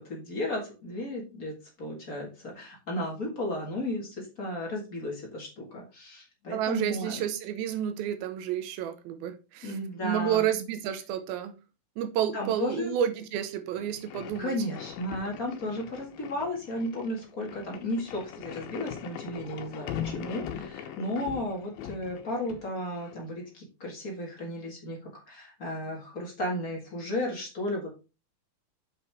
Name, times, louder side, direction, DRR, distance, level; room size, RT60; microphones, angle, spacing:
voice 1, 0.0-7.2 9.6-10.5 12.3-12.9 14.4-28.0, left 1 dB, 35° left, 1.6 m, -34 dB
voice 2, 6.5-9.7 10.0-11.5 12.0-14.5, right 10 dB, 85° right, 2.7 m, -30 dB
sound 1, 13.7-23.2, left 9 dB, 90° left, 2.8 m, -41 dB
7.4 x 5.7 x 3.5 m
omnidirectional pair, 4.2 m